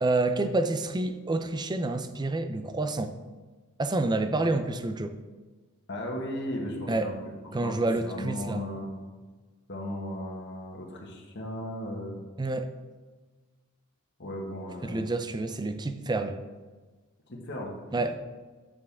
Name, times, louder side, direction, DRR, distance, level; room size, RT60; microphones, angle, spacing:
voice 1, 0.0-3.1 3.8-5.1 6.9-7.1 7.5-8.6 12.4-12.7 14.8-16.4 17.9-18.2, right 2 dB, 20° right, 9 dB, 0.5 m, -28 dB
voice 2, 5.9-7.1 7.6-7.7 8.0-8.9 9.7-12.2 14.2-15.1 17.3-17.7, left 1 dB, 55° left, -1 dB, 1.5 m, -36 dB
8.7 x 6.8 x 3.6 m, 1.3 s
head